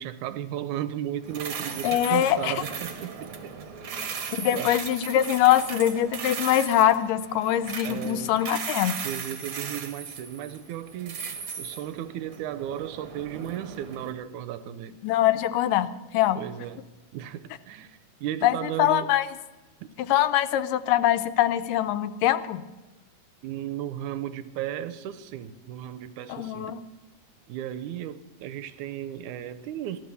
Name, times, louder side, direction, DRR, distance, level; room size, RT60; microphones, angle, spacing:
voice 1, 0.0-3.5 3.9-4.8 7.8-8.4 9.0-11.2 11.6-15.0 16.4-16.9 17.1-19.1 23.4-26.7 27.5-30.0, right 11 dB, 80° right, 13 dB, 1.9 m, -35 dB
sound 1, 1.2-14.1, right 6 dB, 60° right, 1.5 m, -37 dB
voice 2, 1.8-2.6 4.4-9.0 15.0-16.4 18.4-19.3 20.0-22.6 26.3-26.8, left 12 dB, 80° left, 12 dB, 2.2 m, -23 dB
16.0 x 12.0 x 6.8 m, 1.1 s
omnidirectional pair, 3.9 m